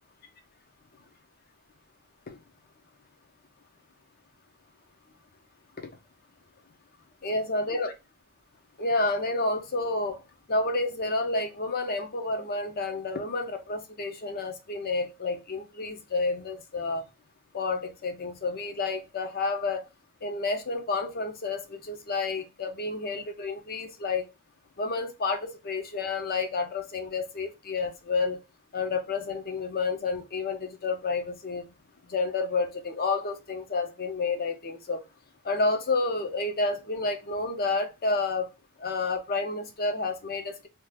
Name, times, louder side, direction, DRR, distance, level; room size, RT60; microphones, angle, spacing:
voice 1, 7.2-7.9 8.8-10.2 10.5-17.0 17.5-19.9 20.2-24.3 24.8-28.4 28.7-31.7 32.1-35.0 35.4-38.5 38.8-40.7, left 3 dB, 45° left, 0.7 m, -30 dB
2.9 x 2.4 x 3.4 m
head